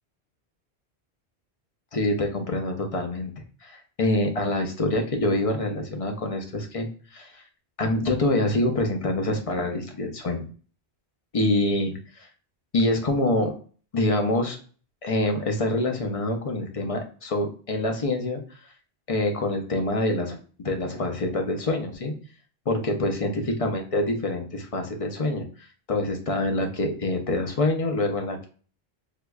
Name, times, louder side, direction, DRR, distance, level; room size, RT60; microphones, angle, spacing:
voice 1, 1.9-3.3 3.6-7.4 7.8-10.4 11.3-12.3 12.7-13.5 13.9-14.6 15.0-18.4 19.1-22.1 22.7-23.3 23.6-25.4 25.9-28.5, left 2 dB, 40° left, 4 dB, 0.6 m, -26 dB
4.6 x 2.3 x 2.2 m, 0.40 s
omnidirectional pair, 1.1 m